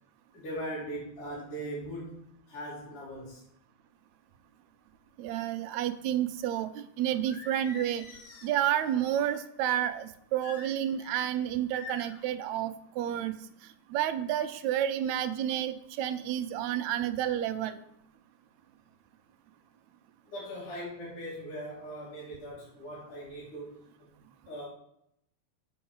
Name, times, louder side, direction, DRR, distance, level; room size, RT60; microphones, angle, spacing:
voice 1, 0.3-3.4 20.3-24.1 24.5-24.7, equal, 90° left, -9 dB, 4.1 m, -40 dB
voice 2, 5.2-8.1 8.4-13.4 13.9-17.8, right 11 dB, 75° right, 10 dB, 1.8 m, -30 dB
Singing, 7.3-9.4 10.4-11.3 11.7-12.2, left 4 dB, 70° left, 1.0 m, -46 dB
7.8 x 4.6 x 7.1 m, 0.74 s
omnidirectional pair, 3.6 m